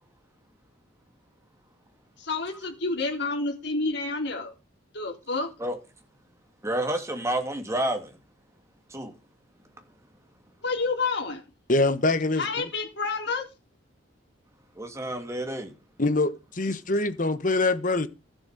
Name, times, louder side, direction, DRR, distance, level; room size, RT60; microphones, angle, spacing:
voice 1, 2.2-4.5 4.9-5.5 10.6-11.4 12.4-13.5, left 3 dB, 60° left, 3.7 m, -29 dB
voice 2, 6.6-8.2 8.9-9.1 14.8-15.7, right 1 dB, 15° right, 2.5 m, -29 dB
voice 3, 11.7-12.7 16.0-18.1, left 2 dB, 40° left, 1.2 m, -24 dB
14.0 x 7.7 x 6.6 m
head